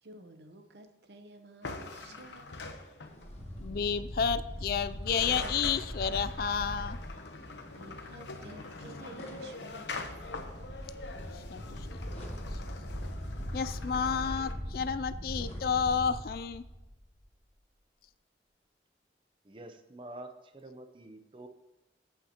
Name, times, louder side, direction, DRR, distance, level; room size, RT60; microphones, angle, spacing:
voice 1, 0.0-2.6 7.7-10.3, right 2 dB, 75° right, 6 dB, 0.9 m, -52 dB
sound 1, 1.6-3.4 4.8-4.9 5.0-14.5, left 3 dB, 85° left, 0.9 m, -44 dB
sound 2, 3.0-16.2, left 1 dB, 35° left, 1.3 m, -54 dB
sound 3, 3.2-7.1 9.9-17.2, equal, 15° left, 2.2 m, -40 dB
voice 2, 3.6-7.0 11.3-11.9 13.5-16.6, left 6 dB, 55° left, 14 dB, 0.3 m, -31 dB
voice 3, 19.4-21.5, right 1 dB, 30° right, 8 dB, 0.6 m, -47 dB
14.0 x 5.8 x 2.9 m, 1.0 s
head